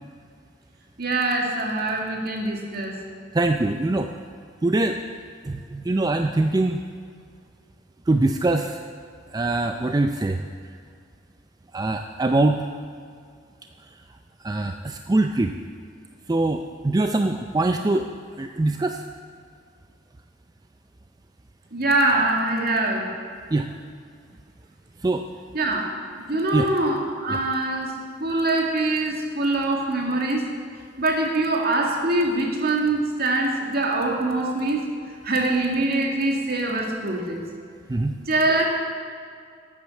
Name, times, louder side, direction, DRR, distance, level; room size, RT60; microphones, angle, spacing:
voice 1, 1.0-3.0 21.7-23.1 25.5-27.9 28.2-30.4 31.0-34.8 35.2-37.4 38.3-38.7, right 2 dB, 55° right, 0 dB, 2.1 m, -23 dB
voice 2, 3.3-4.1 4.6-5.0 5.4-6.8 8.1-8.8 9.3-10.4 11.7-12.6 14.4-15.6 16.3-18.1 18.4-19.0 23.5-23.7 25.0-25.2 26.5-26.7 27.3-27.4 37.9-38.2, right 2 dB, 20° right, 6 dB, 0.4 m, -23 dB
12.0 x 8.6 x 7.2 m, 2.2 s
head